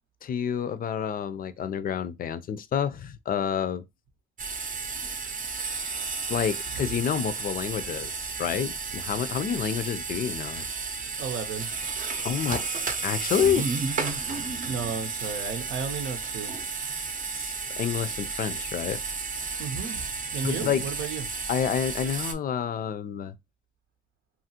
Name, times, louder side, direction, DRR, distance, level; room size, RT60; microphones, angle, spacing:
voice 1, 0.2-3.8 6.3-10.7 12.2-12.6 13.0-13.7 17.3-19.0 20.4-20.9 21.5-23.4, left 8 dB, 45° left, 0.4 m, -29 dB
sound 1, 4.4-22.3, right 4 dB, 40° right, 0.6 m, -32 dB
voice 2, 11.2-11.7 14.6-16.6 19.6-21.2, right 6 dB, 80° right, 0.7 m, -33 dB
2.8 x 2.4 x 2.7 m
cardioid pair, 90°, 20 cm